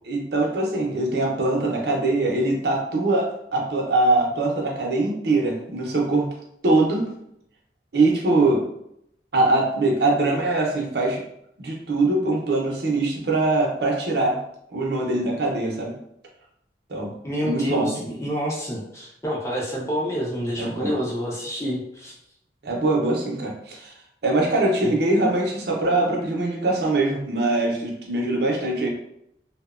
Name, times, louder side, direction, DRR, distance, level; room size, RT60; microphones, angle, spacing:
voice 1, 0.1-6.3 6.6-7.1 7.9-8.6 9.3-11.2 11.6-14.4 14.7-16.0 16.9-17.1 17.4-17.9 20.6-20.9 22.6-23.9 24.2-28.9, right 2 dB, 65° right, -1 dB, 0.6 m, -22 dB
voice 2, 17.2-22.1 24.8-24.9, equal, 15° left, -4 dB, 0.5 m, -28 dB
2.7 x 2.0 x 2.4 m, 0.76 s
head